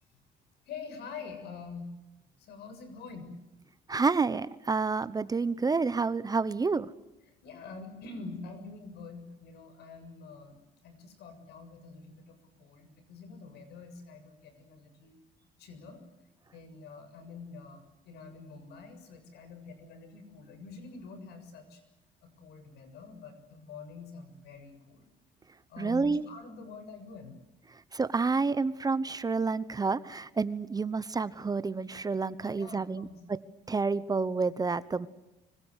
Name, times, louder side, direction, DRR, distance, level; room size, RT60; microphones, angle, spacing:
voice 1, 0.7-1.9 2.4-3.4 7.4-15.2 15.6-16.0 16.5-21.8 22.2-25.1 25.7-27.4 32.4-33.2, left 4 dB, 75° left, 9 dB, 7.1 m, -46 dB
voice 2, 3.9-6.9 25.8-26.3 27.9-33.4 33.7-35.1, right 4 dB, 20° right, 16 dB, 0.9 m, -29 dB
25.5 x 25.0 x 8.1 m, 0.97 s
cardioid pair, 110°, 17 cm